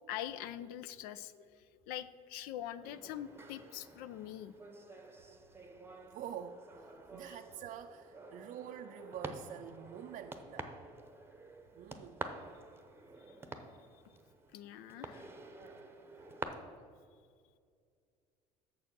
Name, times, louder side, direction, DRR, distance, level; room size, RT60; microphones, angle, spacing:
voice 1, 0.1-4.5 7.2-7.4 13.3-13.4 13.9-14.0 14.5-15.3, left 11 dB, 70° left, 14 dB, 0.4 m, -44 dB
sound 1, 2.8-16.4, right 3 dB, 15° right, 0.8 m, -49 dB
voice 2, 6.1-10.9 11.7-12.3 13.3-13.8 16.2-16.3, right 9 dB, 50° right, 6 dB, 0.4 m, -47 dB
6.7 x 6.6 x 5.9 m, 2.2 s
hypercardioid pair, 75°, 16 cm